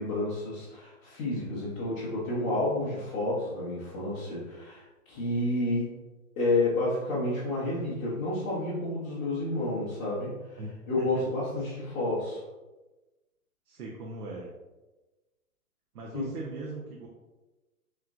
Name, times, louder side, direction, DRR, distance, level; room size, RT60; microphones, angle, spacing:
voice 1, 0.0-5.9 6.4-10.6 10.9-12.4 16.1-16.3, left 2 dB, 20° left, -10 dB, 0.7 m, -30 dB
voice 2, 13.7-14.5 15.9-17.1, right 2 dB, 90° right, -2 dB, 0.9 m, -39 dB
5.6 x 3.1 x 2.5 m, 1.1 s
hypercardioid pair, 155°, 44 cm